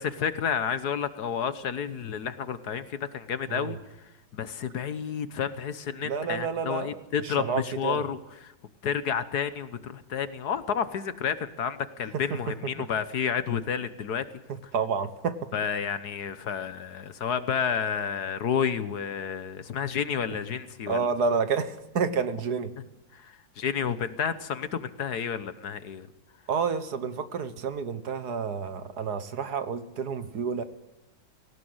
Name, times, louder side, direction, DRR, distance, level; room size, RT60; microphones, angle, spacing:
voice 1, 0.0-3.8 4.3-8.2 8.4-8.5 8.8-14.2 15.5-21.1 23.1-26.1, left 7 dB, 60° left, 13 dB, 1.5 m, -30 dB
voice 2, 6.0-8.1 12.1-12.4 14.5-15.5 20.9-22.7 26.5-30.6, right 5 dB, 60° right, 12 dB, 1.7 m, -30 dB
19.0 x 18.0 x 8.0 m, 0.90 s
omnidirectional pair, 2.0 m